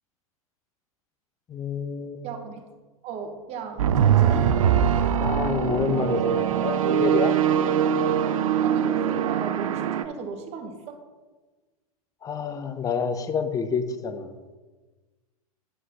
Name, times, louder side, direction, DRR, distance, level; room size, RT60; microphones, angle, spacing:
voice 1, 1.5-2.3 5.2-7.3 12.2-14.3, left 6 dB, 20° left, 9 dB, 0.6 m, -28 dB
voice 2, 2.2-2.6 3.0-4.5 8.6-11.0, right 5 dB, 35° right, 6 dB, 1.1 m, -36 dB
sound 1, 3.8-10.0, right 9 dB, 65° right, 0.5 m, -22 dB
9.1 x 8.0 x 2.9 m, 1.3 s
figure-of-eight pair, 100°, 19 cm